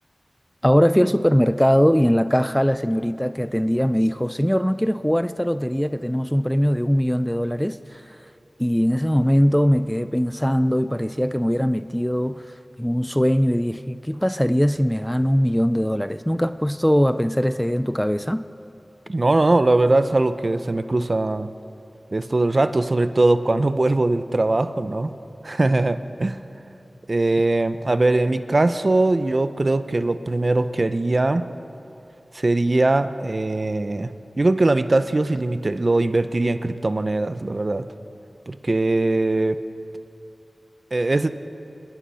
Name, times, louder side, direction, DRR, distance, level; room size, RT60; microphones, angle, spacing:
voice 1, 0.6-8.2 8.6-18.5, equal, 5° left, 0.5 m, -21 dB
voice 2, 19.1-21.5 22.1-25.1 25.4-26.4 27.1-31.5 32.3-37.9 38.5-39.6 40.9-41.3, right 2 dB, 45° right, 0.9 m, -21 dB
26.5 x 20.0 x 5.7 m
wide cardioid pair, 55°, 0 cm